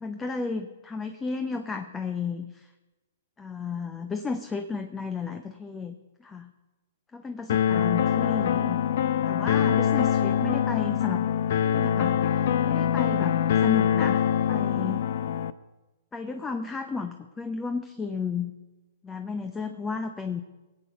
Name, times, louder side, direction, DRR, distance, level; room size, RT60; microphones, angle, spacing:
voice 1, 0.0-2.7 3.4-5.9 6.2-6.5 7.1-8.8 9.3-11.3 11.6-14.2 14.5-15.0 16.1-18.5 19.0-20.4, left 4 dB, 15° left, 7 dB, 0.8 m, -33 dB
sound 1, 7.5-15.5, left 9 dB, 60° left, 0.6 m, -24 dB
19.5 x 8.6 x 5.7 m, 1.1 s
hypercardioid pair, 125°, 0 cm